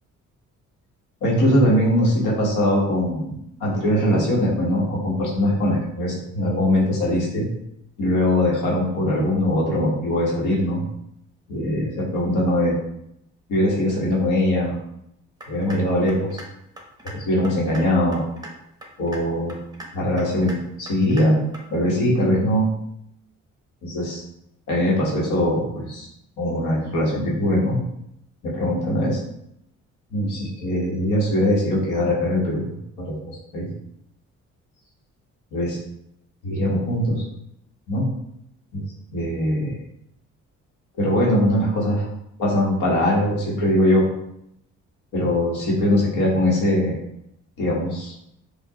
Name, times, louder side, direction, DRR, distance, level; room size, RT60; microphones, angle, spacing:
voice 1, 1.2-3.3 3.6-7.5 8.0-10.8 11.5-12.8 13.5-14.8 15.5-16.4 17.0-18.2 19.0-19.6 19.9-21.4 21.7-22.7 23.8-24.2 24.7-26.1 26.4-27.8 28.4-29.2 30.1-32.7 33.0-33.7 35.5-35.8 36.4-37.2 37.9-38.1 38.7-38.8 39.1-39.7 41.0-42.1 42.4-44.1 45.1-47.0 47.6-48.1, left 1 dB, 85° left, -3 dB, 1.3 m, -21 dB
sound 1, 15.4-15.8 16.1-16.4 16.8-17.1 17.4-17.8 18.1-18.5 18.8-19.2 19.5-19.9 20.2-20.5 20.9-21.2 21.5-21.6, right 1 dB, 15° right, 0.8 m, -38 dB
4.6 x 2.4 x 2.8 m, 0.79 s
cardioid pair, 90°, 30 cm